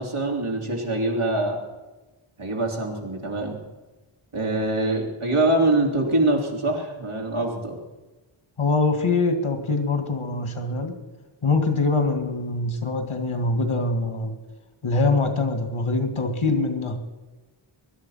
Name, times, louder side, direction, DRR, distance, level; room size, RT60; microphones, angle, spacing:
voice 1, 0.0-1.6 2.4-3.6 4.3-7.8, right 2 dB, 90° right, 0 dB, 3.3 m, -24 dB
voice 2, 8.6-10.9 11.4-14.4 14.8-17.0, left 3 dB, 80° left, 7 dB, 2.3 m, -23 dB
20.5 x 11.5 x 5.8 m, 1.1 s
wide cardioid pair, 55°, 49 cm